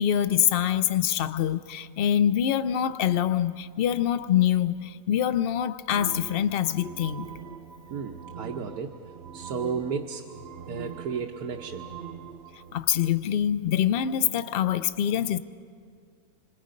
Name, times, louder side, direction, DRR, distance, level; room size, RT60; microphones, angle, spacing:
voice 1, 0.0-7.3 12.7-15.4, left 10 dB, 50° left, 13 dB, 0.7 m, -25 dB
sound 1, 5.9-12.8, right 7 dB, 50° right, 0.8 m, -42 dB
voice 2, 7.9-10.3 10.7-11.9, right 6 dB, 90° right, 3 dB, 1.5 m, -33 dB
27.0 x 26.0 x 5.3 m, 2.2 s
omnidirectional pair, 1.5 m